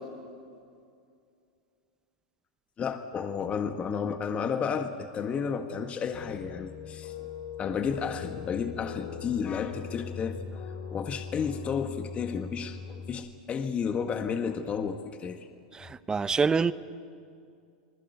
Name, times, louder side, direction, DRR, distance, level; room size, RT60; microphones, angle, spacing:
voice 1, 2.8-7.3 7.6-15.5, left 6 dB, 30° left, 6 dB, 1.6 m, -32 dB
sound 1, 6.1-13.1, left 7 dB, 60° left, 5.9 m, -40 dB
voice 2, 15.8-16.7, right 5 dB, 15° right, 15 dB, 0.8 m, -25 dB
28.0 x 20.5 x 8.2 m, 2.4 s
hypercardioid pair, 105°, 5 cm